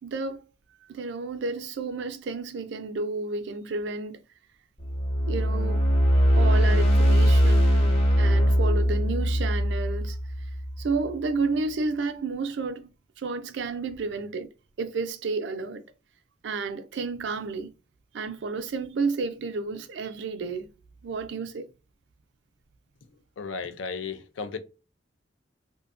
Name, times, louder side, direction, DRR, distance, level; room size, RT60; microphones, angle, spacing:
voice 1, 0.0-0.4 0.9-4.2 5.3-5.8 6.3-7.9 8.2-10.5 10.8-12.9 13.2-14.5 14.8-15.8 16.4-17.7 18.1-20.7 21.0-21.7, right 4 dB, 75° right, 0.4 m, -31 dB
sound 1, 4.8-11.0, equal, 35° left, 0.7 m, -21 dB
voice 2, 23.4-24.6, left 5 dB, 90° left, 0.4 m, -34 dB
2.6 x 2.2 x 2.4 m
head